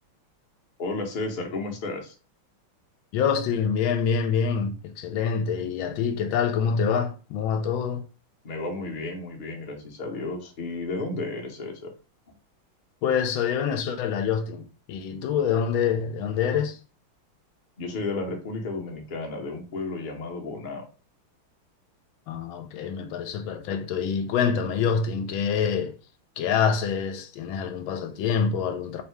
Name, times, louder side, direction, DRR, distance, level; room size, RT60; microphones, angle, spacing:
voice 1, 0.8-2.1 8.4-11.9 17.8-20.8, left 3 dB, 40° left, 0.7 m, -33 dB
voice 2, 3.1-8.1 13.0-16.8 22.3-26.0 26.4-29.0, left 7 dB, 75° left, 1.3 m, -26 dB
3.6 x 2.7 x 4.5 m
omnidirectional pair, 2.3 m